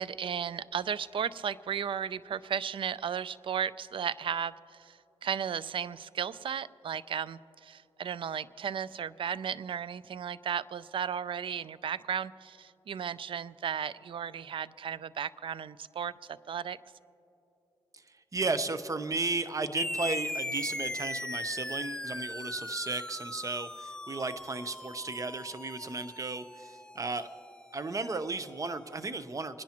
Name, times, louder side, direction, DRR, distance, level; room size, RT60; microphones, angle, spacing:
voice 1, 0.0-16.8, right 8 dB, 55° right, 19 dB, 0.4 m, -35 dB
voice 2, 18.3-27.3 27.7-29.6, right 3 dB, 30° right, 12 dB, 0.8 m, -34 dB
sound 1, 19.8-28.6, left 1 dB, 5° left, 0.4 m, -39 dB
28.5 x 10.5 x 3.0 m, 2.8 s
cardioid pair, 60°, 11 cm